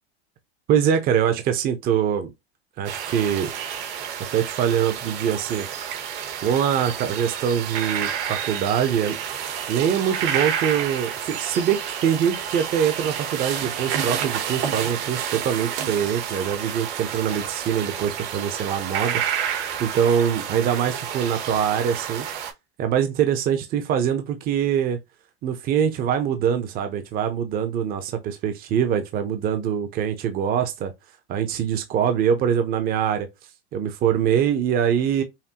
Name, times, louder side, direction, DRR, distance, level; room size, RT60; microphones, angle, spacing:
voice 1, 0.7-2.3 2.8-3.5 4.3-5.7 6.4-9.2 9.7-19.2 19.8-22.3 22.8-25.0 25.4-30.9 31.3-33.3 33.7-35.2, right 8 dB, 30° right, 0.7 m, -23 dB
sound 1, 2.8-22.5, right 8 dB, 70° right, 1.5 m, -30 dB
5.7 x 2.2 x 2.8 m
supercardioid pair, 155°, 32 cm